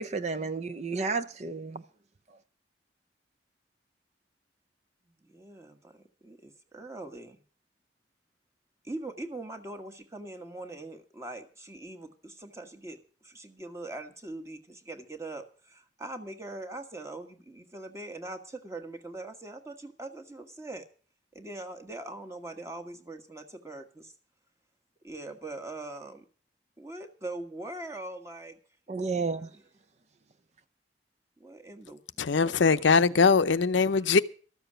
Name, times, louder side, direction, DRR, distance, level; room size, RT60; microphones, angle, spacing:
voice 1, 0.0-1.8 28.9-29.5, right 4 dB, 35° right, 0.5 m, -31 dB
voice 2, 5.1-7.4 8.8-20.9 21.3-24.1 25.0-26.2 26.8-28.6 29.1-29.2 31.4-32.8, right 2 dB, 15° right, 1.4 m, -42 dB
voice 3, 32.2-34.2, left 4 dB, 85° left, 0.6 m, -22 dB
13.5 x 7.0 x 8.7 m
head